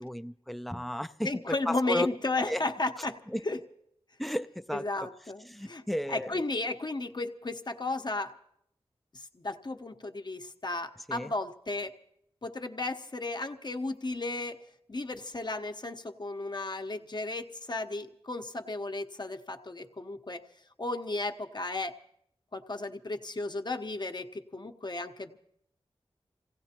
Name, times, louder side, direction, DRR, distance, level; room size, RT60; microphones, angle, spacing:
voice 1, 0.0-2.1 2.5-2.6 3.0-3.4 4.2-5.1 5.4-6.4 11.1-11.3, left 1 dB, ahead, 0.5 m, -34 dB
voice 2, 1.2-3.2 3.5-3.6 4.7-5.8 6.1-8.3 9.1-11.9 12.4-14.6 14.9-20.4 20.8-22.0 22.5-25.4, left 2 dB, 45° left, 1.0 m, -34 dB
28.0 x 17.0 x 2.9 m
cardioid pair, 50°, 10 cm